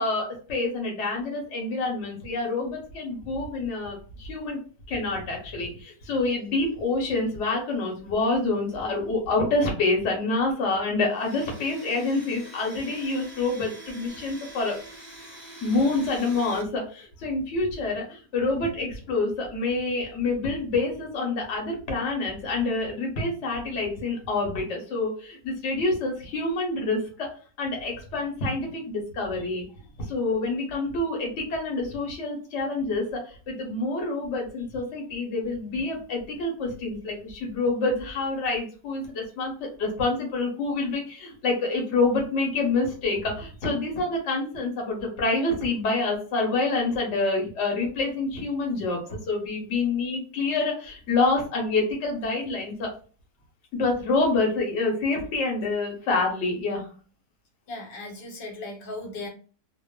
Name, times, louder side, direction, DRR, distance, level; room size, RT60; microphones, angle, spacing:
voice 1, 0.0-4.6 4.9-14.8 15.6-27.3 27.6-29.6 30.0-52.9 53.7-56.9, left 3 dB, 50° left, 0 dB, 1.0 m, -27 dB
Domestic sounds home sounds, 11.1-16.6, right 1 dB, 20° right, 0.8 m, -45 dB
voice 2, 57.7-59.3, left 2 dB, 80° left, 1 dB, 1.4 m, -38 dB
2.9 x 2.1 x 2.2 m, 0.38 s
omnidirectional pair, 2.0 m